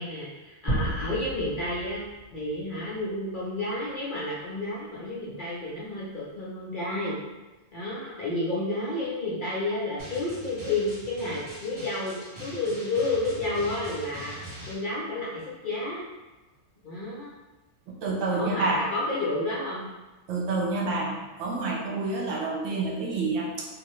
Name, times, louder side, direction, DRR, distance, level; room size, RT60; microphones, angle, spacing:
voice 1, 0.0-2.0 2.3-7.2 7.7-16.0 16.8-17.3 18.3-19.8, left 2 dB, 55° left, -7 dB, 0.6 m, -31 dB
sound 1, 0.7-2.6, right 1 dB, 20° left, 1.2 m, -32 dB
Drum, 10.0-14.7, right 1 dB, 30° right, 0.7 m, -42 dB
voice 2, 18.0-18.8 20.3-23.7, right 3 dB, 75° right, -2 dB, 1.0 m, -28 dB
2.7 x 2.4 x 3.0 m, 1.2 s
omnidirectional pair, 1.3 m